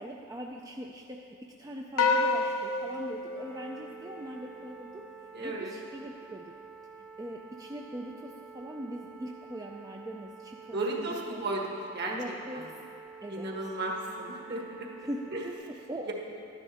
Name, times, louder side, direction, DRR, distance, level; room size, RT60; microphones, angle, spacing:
voice 1, 0.0-5.1 5.4-6.5 7.2-11.4 12.1-12.7 13.2-13.8 15.0-16.1, right 1 dB, 15° right, 0 dB, 0.4 m, -41 dB
sound 1, 2.0-4.5, left 3 dB, 70° left, 0.6 m, -29 dB
sound 2, 3.4-15.6, right 5 dB, 80° right, 1.6 m, -49 dB
voice 2, 5.3-5.8 10.7-12.2 12.5-12.6 13.3-15.4 16.1-16.2, right 2 dB, 50° right, -1 dB, 1.5 m, -35 dB
12.0 x 10.5 x 4.3 m, 2.5 s
head